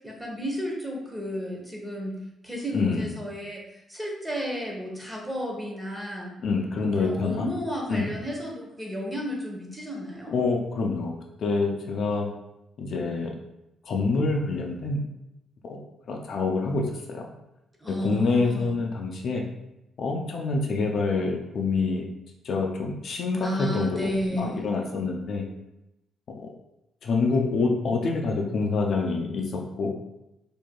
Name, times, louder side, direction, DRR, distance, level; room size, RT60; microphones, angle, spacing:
voice 1, 0.0-3.6 3.9-6.3 6.8-10.3 17.8-18.8 23.4-24.6, equal, 5° right, -1 dB, 1.0 m, -32 dB
voice 2, 2.7-3.1 6.4-7.5 7.9-8.1 10.3-11.1 11.4-12.3 12.8-13.3 13.9-15.0 15.6-15.8 16.1-17.3 17.9-19.4 20.0-22.0 22.4-24.1 24.4-25.4 26.4-26.5 27.0-29.9, left 3 dB, 60° left, 1 dB, 0.5 m, -26 dB
4.6 x 2.6 x 2.3 m, 0.88 s
cardioid pair, 90°, 0 cm